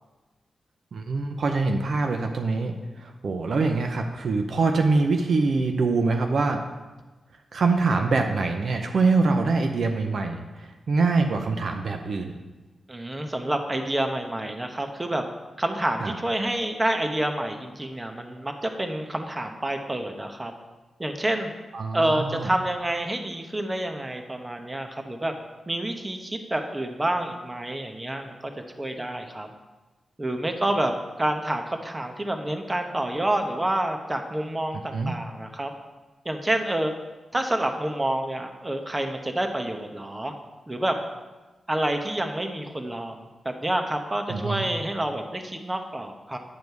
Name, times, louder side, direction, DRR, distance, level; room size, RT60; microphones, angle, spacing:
voice 1, 0.9-2.7 3.0-6.6 7.5-12.3 16.0-16.1 21.7-22.5 34.9-35.1 44.3-44.7, right 3 dB, 70° right, 4 dB, 0.6 m, -24 dB
voice 2, 12.9-15.2 15.6-20.5 21.0-21.5 21.9-25.3 25.7-28.5 28.8-29.5 30.2-30.9 31.2-35.7 36.2-36.9 37.3-40.3 40.7-41.0 41.7-46.4, right 1 dB, 25° right, 5 dB, 1.0 m, -28 dB
9.7 x 5.2 x 4.7 m, 1.2 s
cardioid pair, 60°, 0 cm